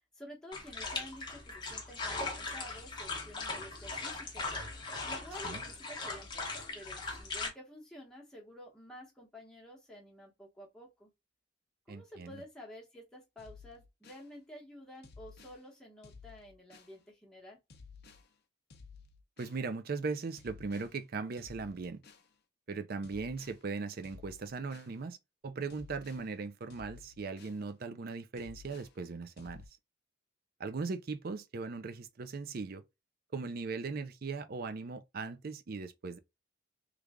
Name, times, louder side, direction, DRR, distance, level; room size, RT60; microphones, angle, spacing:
voice 1, 0.1-4.5 5.0-11.1 11.9-17.6, equal, 5° left, 1.1 m, -51 dB
sound 1, 0.5-7.5, left 3 dB, 20° left, 0.8 m, -39 dB
voice 2, 11.9-12.4 19.4-22.0 22.7-25.2 25.4-29.6 30.6-32.8 33.3-36.2, right 4 dB, 45° right, 0.4 m, -39 dB
sound 2, 13.4-14.3 15.0-15.6 16.0-17.0 17.7-18.3 18.7-19.6 20.4-20.9 21.4-22.3 23.0-23.6 24.0-24.9 25.7-26.3 26.7-27.6 28.4-28.9 29.4-29.7, left 5 dB, 50° left, 0.6 m, -54 dB
3.2 x 2.4 x 3.5 m
head